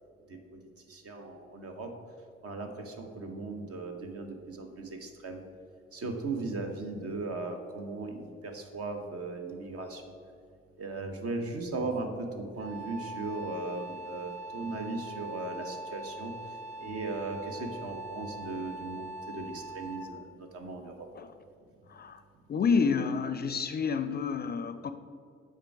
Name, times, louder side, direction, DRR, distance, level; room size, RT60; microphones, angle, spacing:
voice 1, 0.9-1.9 2.4-5.4 5.9-10.1 10.8-16.3 16.8-21.1, right 3 dB, 50° right, 5 dB, 1.2 m, -37 dB
Wind instrument woodwind instrument, 12.6-20.2, right 2 dB, 80° right, 1.0 m, -42 dB
voice 2, 21.9-22.2 22.5-24.9, left 5 dB, 30° left, 10 dB, 0.5 m, -29 dB
7.3 x 4.7 x 4.7 m, 2.3 s
figure-of-eight pair, 50°, 31 cm